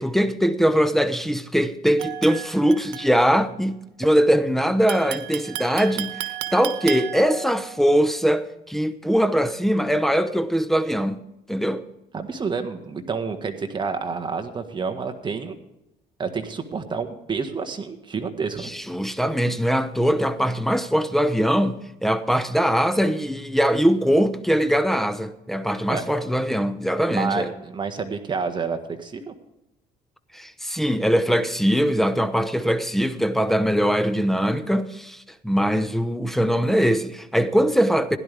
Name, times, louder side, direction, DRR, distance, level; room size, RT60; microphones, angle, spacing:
voice 1, 0.0-6.2 6.5-11.2 11.5-11.8 18.6-27.5 30.3-38.2, equal, ahead, 0.8 m, -21 dB
sound 1, 2.0-3.5 4.9-7.9, right 14 dB, 90° right, 1.2 m, -34 dB
voice 2, 12.1-15.5 16.2-18.7 25.9-26.0 27.1-29.3, right 5 dB, 25° right, 1.5 m, -29 dB
16.5 x 11.0 x 3.5 m
cardioid pair, 110°, 17 cm